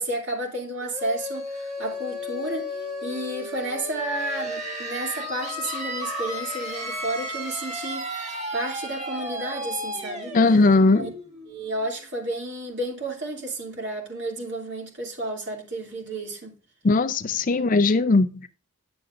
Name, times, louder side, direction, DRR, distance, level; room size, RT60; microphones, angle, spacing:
voice 1, 0.0-8.1 8.5-10.4 11.0-11.1 11.5-16.5 17.5-17.7 18.1-18.2, right 1 dB, 50° right, 2.7 m, -32 dB
sound 1, 0.8-12.3, left 1 dB, 30° right, 1.8 m, -34 dB
voice 2, 10.3-11.1 16.8-18.5, left 3 dB, 35° left, 0.5 m, -19 dB
10.5 x 6.8 x 2.5 m
head